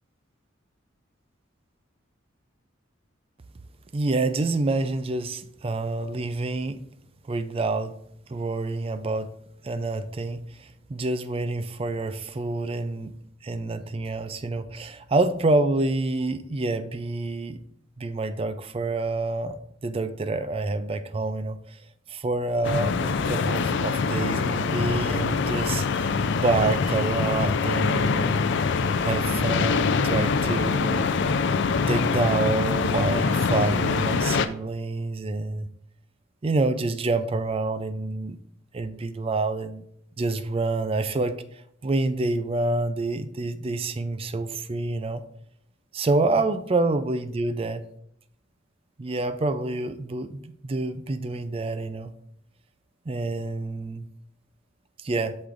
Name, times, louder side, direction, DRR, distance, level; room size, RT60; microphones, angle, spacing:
voice 1, 3.9-6.8 7.3-8.0 8.3-9.3 9.6-13.2 13.4-17.6 18.0-21.6 22.1-25.9 26.4-28.4 29.0-31.1 31.9-35.7 36.4-38.4 38.7-39.8 40.2-41.4 41.8-45.2 45.9-47.8 49.0-52.1 53.1-54.1 55.0-55.4, right 2 dB, 30° right, 0.4 m, -27 dB
sound 1, 22.6-34.5, left 5 dB, 60° left, 0.4 m, -24 dB
8.2 x 6.3 x 2.5 m
head